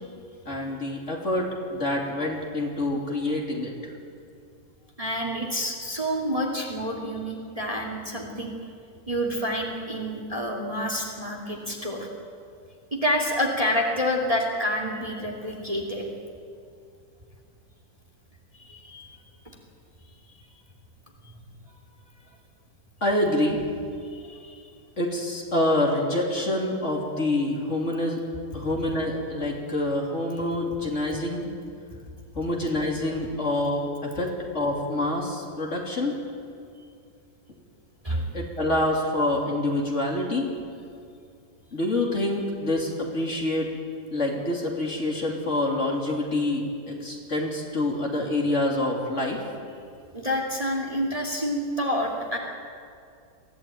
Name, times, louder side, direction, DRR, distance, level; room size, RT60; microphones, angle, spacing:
voice 1, 0.5-3.9 23.0-23.7 25.0-28.2 28.5-31.5 32.3-36.2 38.3-40.5 41.7-43.7 44.1-49.4, left 1 dB, 40° left, -1 dB, 3.2 m, -26 dB
voice 2, 5.0-8.5 9.1-12.1 12.9-16.1 18.6-19.2 24.0-24.7 38.0-38.3 50.1-52.4, equal, 20° right, 0 dB, 2.6 m, -28 dB
23.0 x 15.5 x 9.2 m, 2.4 s
omnidirectional pair, 2.0 m